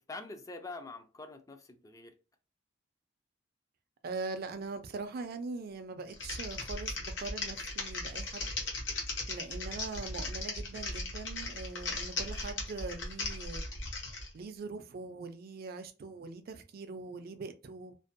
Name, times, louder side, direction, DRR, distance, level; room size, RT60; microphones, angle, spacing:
voice 1, 0.1-2.1, left 3 dB, 20° left, 0.3 m, -45 dB
voice 2, 4.0-8.5 9.3-13.6 14.3-18.0, right 3 dB, 50° right, 0.4 m, -42 dB
Typing, 6.1-14.3, left 2 dB, 70° left, 0.8 m, -37 dB
2.5 x 2.1 x 2.4 m
head